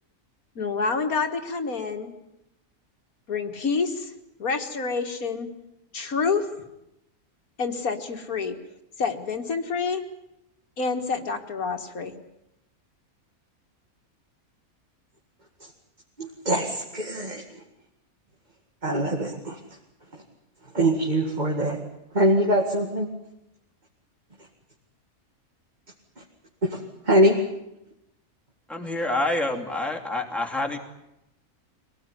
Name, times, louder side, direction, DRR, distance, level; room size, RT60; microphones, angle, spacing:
voice 1, 0.6-2.1 3.3-4.1 4.4-5.5 5.9-6.5 7.6-8.6 9.0-10.0 10.8-12.2, left 5 dB, 75° left, 6 dB, 2.2 m, -27 dB
voice 2, 16.2-17.4 18.8-19.6 20.7-21.8 22.1-23.1 26.7-26.8 27.1-27.3, right 1 dB, 30° right, 0 dB, 2.3 m, -23 dB
voice 3, 28.7-30.8, left 2 dB, ahead, 0 dB, 2.7 m, -27 dB
24.0 x 17.5 x 9.9 m, 0.87 s
omnidirectional pair, 1.6 m